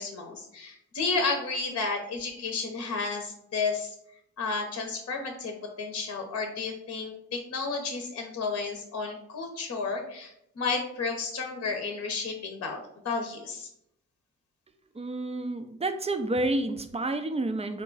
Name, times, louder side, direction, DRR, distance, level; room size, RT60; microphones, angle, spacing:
voice 1, 0.0-3.9 4.4-13.7, left 4 dB, 45° left, 4 dB, 0.8 m, -32 dB
voice 2, 14.9-17.8, right 2 dB, 20° right, 8 dB, 0.5 m, -29 dB
4.1 x 2.2 x 3.8 m, 0.76 s
hypercardioid pair, 45°, 32 cm